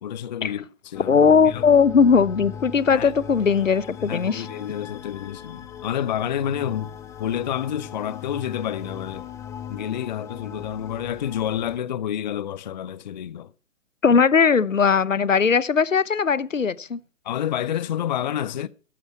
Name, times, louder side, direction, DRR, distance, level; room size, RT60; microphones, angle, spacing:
voice 1, 0.0-1.2 1.5-1.6 2.9-3.1 4.0-6.9 7.2-9.3 9.7-13.5 17.2-18.7, left 10 dB, 35° left, 0.6 m, -29 dB
sound 1, 0.9-11.8, left 8 dB, 10° left, 0.8 m, -39 dB
voice 2, 1.1-4.5 14.0-17.0, left 6 dB, 80° left, 0.9 m, -19 dB
14.5 x 12.0 x 4.4 m
figure-of-eight pair, 130°, 38 cm